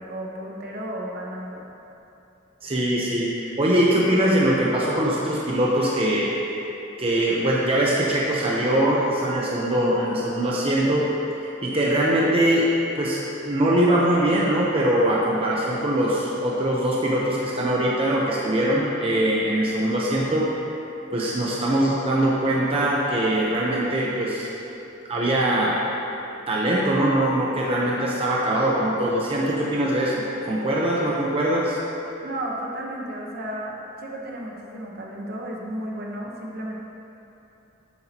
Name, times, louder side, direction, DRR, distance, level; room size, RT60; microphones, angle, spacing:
voice 1, 0.0-1.7 32.2-36.7, right 1 dB, 50° right, -2 dB, 1.1 m, -33 dB
voice 2, 2.6-6.3 7.0-11.0 11.4-12.7 13.0-20.5 21.1-24.5 25.0-25.8 26.5-31.8, right 1 dB, 30° right, -5 dB, 0.9 m, -22 dB
11.0 x 8.4 x 2.9 m, 3.0 s
head